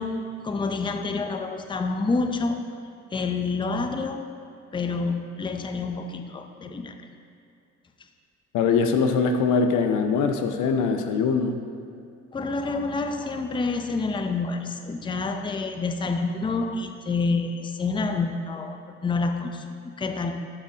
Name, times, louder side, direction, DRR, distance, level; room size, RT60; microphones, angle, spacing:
voice 1, 0.0-2.6 3.1-4.2 4.7-7.0 12.3-19.7 20.0-20.4, left 3 dB, 15° left, 6 dB, 0.5 m, -28 dB
voice 2, 8.5-11.6, left 5 dB, 85° left, 6 dB, 0.6 m, -22 dB
12.5 x 4.9 x 2.7 m, 2.5 s
cardioid pair, 90°, 30 cm